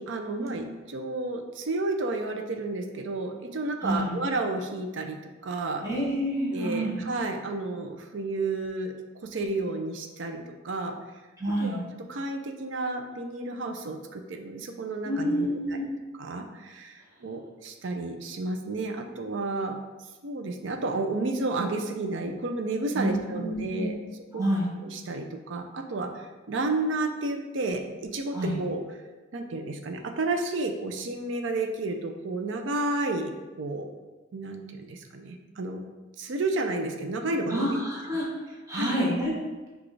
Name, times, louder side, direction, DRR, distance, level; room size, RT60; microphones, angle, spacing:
voice 1, 0.0-5.2 5.4-5.8 6.5-8.9 9.2-10.9 11.6-11.8 12.1-15.8 16.1-19.8 20.2-23.9 24.3-24.4 24.8-28.8 29.3-33.3 33.6-33.9 34.3-35.8 36.2-37.7 38.7-38.9, right 2 dB, 65° right, 4 dB, 0.5 m, -31 dB
voice 2, 3.8-4.1 5.8-7.0 11.4-11.8 15.0-15.8 22.9-23.9 24.3-24.7 28.3-28.6 37.5-38.3 38.7-39.3, equal, 15° right, -6 dB, 0.9 m, -28 dB
6.0 x 2.4 x 3.2 m, 1.2 s
head